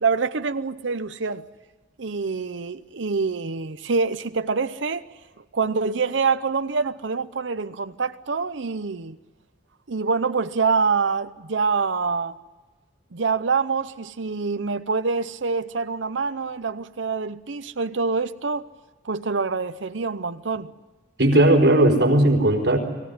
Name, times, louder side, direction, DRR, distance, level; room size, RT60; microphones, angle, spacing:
voice 1, 0.0-1.4 2.0-5.1 5.5-9.2 9.9-12.3 13.1-18.7 19.0-20.7, right 4 dB, 85° right, 0.8 m, -25 dB
voice 2, 21.2-22.8, right 1 dB, 65° right, 4.5 m, -17 dB
24.5 x 16.0 x 9.6 m
head